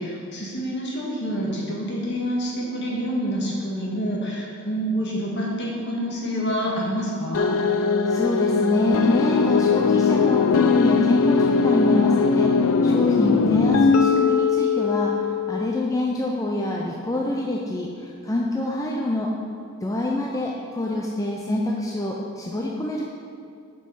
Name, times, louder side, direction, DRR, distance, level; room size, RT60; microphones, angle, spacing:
voice 1, 0.0-7.5, equal, 55° left, -4 dB, 1.7 m, -27 dB
sound 1, 7.3-15.8, left 5 dB, 70° left, 0.4 m, -20 dB
voice 2, 8.1-19.3 19.8-23.0, left 1 dB, 15° left, -2 dB, 0.5 m, -26 dB
7.5 x 5.4 x 5.4 m, 2.4 s
head